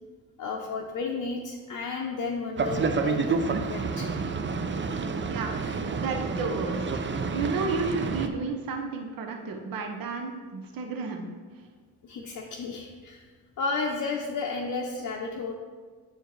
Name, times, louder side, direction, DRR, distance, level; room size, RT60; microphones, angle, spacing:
voice 1, 0.4-4.1 12.0-13.2 13.6-15.5, left 4 dB, 45° left, 0 dB, 0.7 m, -32 dB
Boat Water vehicle, 2.6-8.3, right 4 dB, 30° right, 0.6 m, -29 dB
voice 2, 5.3-5.6 5.9-11.3, right 4 dB, 55° right, 4 dB, 0.9 m, -32 dB
8.0 x 4.5 x 3.1 m, 1.5 s
supercardioid pair, 50°, 41 cm